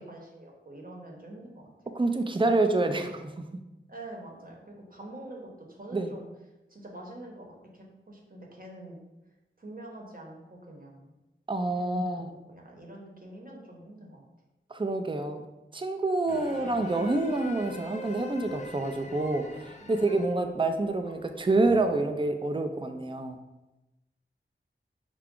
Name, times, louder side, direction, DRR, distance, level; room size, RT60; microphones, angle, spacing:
voice 1, 0.1-1.7 3.9-6.3 6.7-9.0 9.6-11.1 11.8-14.2 16.3-16.4 19.8-20.5, right 1 dB, 45° right, -1 dB, 0.9 m, -46 dB
voice 2, 1.9-3.6 5.9-6.1 11.5-12.4 14.7-15.4 15.7-23.4, right 2 dB, 25° right, 6 dB, 0.4 m, -27 dB
sound 1, 16.3-22.0, left 1 dB, 35° left, 0.5 m, -44 dB
4.9 x 2.3 x 3.6 m, 1.0 s
wide cardioid pair, 40°, 21 cm